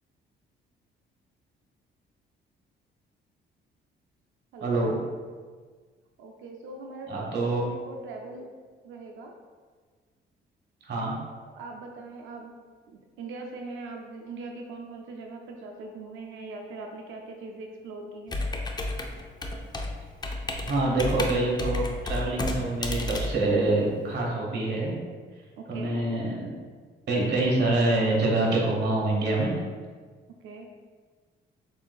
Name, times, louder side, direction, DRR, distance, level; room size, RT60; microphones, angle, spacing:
voice 1, 4.6-5.0 7.1-7.7 10.8-11.2 20.6-25.0 25.7-26.5 27.1-29.5, right 2 dB, 60° right, -3 dB, 1.2 m, -26 dB
voice 2, 6.2-8.5 8.8-9.3 11.5-12.5 12.9-18.4 25.6-26.0 30.3-30.7, right 3 dB, 85° right, 2 dB, 0.5 m, -41 dB
Computer keyboard, 18.3-24.2, left 2 dB, 20° left, 0.5 m, -32 dB
6.8 x 2.6 x 2.3 m, 1.5 s
cardioid pair, 90°, 20 cm